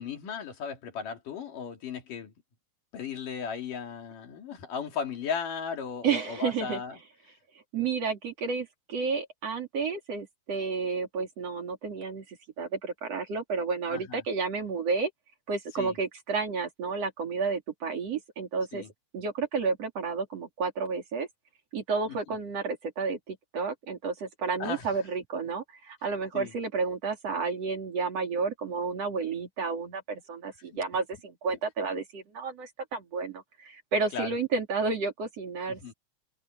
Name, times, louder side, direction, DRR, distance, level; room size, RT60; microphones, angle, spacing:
voice 1, 0.0-2.3 2.9-7.0 13.9-14.2 15.8-16.0 18.7-18.9 22.1-22.4 24.6-25.0 26.3-26.5 34.1-34.4 35.7-35.9, left 6 dB, 75° left, 4.3 m, -36 dB
voice 2, 6.0-6.8 7.7-15.1 15.5-18.8 19.1-21.3 21.7-35.9, right 4 dB, 50° right, 3.9 m, -31 dB
open air
omnidirectional pair, 3.7 m